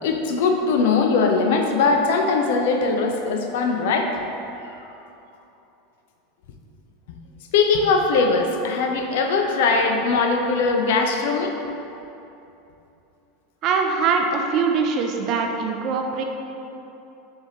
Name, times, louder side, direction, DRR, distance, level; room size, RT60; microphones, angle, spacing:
voice 1, 0.0-4.1 7.5-11.6, left 4 dB, 60° left, 3 dB, 0.4 m, -20 dB
voice 2, 13.6-16.2, right 5 dB, 45° right, 3 dB, 0.4 m, -22 dB
4.3 x 3.3 x 2.9 m, 2.9 s
figure-of-eight pair, 80°, 0 cm